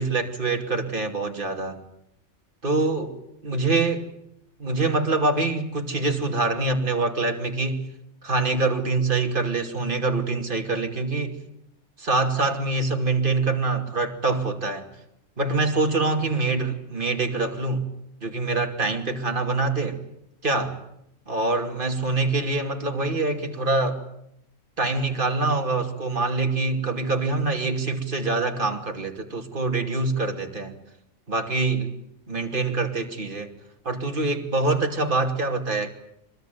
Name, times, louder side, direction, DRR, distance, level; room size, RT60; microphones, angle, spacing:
voice 1, 0.0-1.8 2.6-3.2 3.4-4.1 4.6-7.9 8.2-11.4 12.0-14.9 15.4-17.9 18.2-20.0 20.4-20.8 21.3-24.0 24.8-30.8 31.3-31.9 32.3-33.5 33.8-35.9, right 3 dB, 45° right, 4 dB, 2.7 m, -25 dB
24.5 x 21.5 x 9.2 m, 0.78 s
omnidirectional pair, 1.3 m